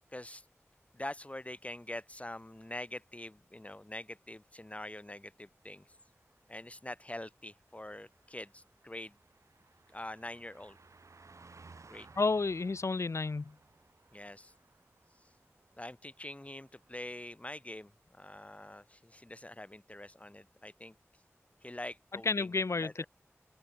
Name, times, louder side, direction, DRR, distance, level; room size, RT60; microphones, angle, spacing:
voice 1, 0.1-0.5 0.9-5.9 6.5-9.2 9.9-10.8 11.9-12.3 14.1-14.5 15.2-15.3 15.8-21.0 21.6-23.1, left 1 dB, 25° left, 3.6 m, -45 dB
Car passing by, 5.5-17.4 17.7-18.0, right 4 dB, 90° right, 4.0 m, -61 dB
voice 2, 12.2-13.5 22.2-23.0, left 3 dB, 70° left, 0.7 m, -31 dB
open air
wide cardioid pair, 45°, 5 cm